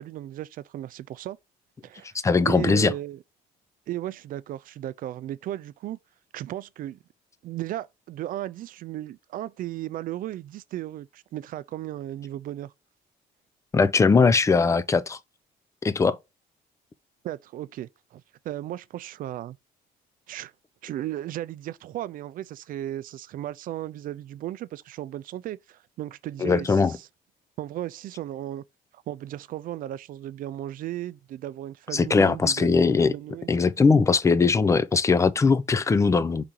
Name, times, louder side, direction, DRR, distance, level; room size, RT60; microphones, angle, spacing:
voice 1, 0.0-1.4 1.8-2.1 2.4-3.2 3.9-6.0 6.3-7.0 7.4-12.7 17.2-19.6 20.3-20.5 20.8-27.0 27.6-28.6 29.1-33.5, right 13 dB, 55° right, 0.4 m, -35 dB
voice 2, 2.2-2.9 13.7-15.2 15.8-16.2 26.4-27.0 31.9-33.1 33.5-36.4, left 4 dB, 20° left, 0.4 m, -20 dB
4.9 x 2.8 x 3.6 m
cardioid pair, 110°, 17 cm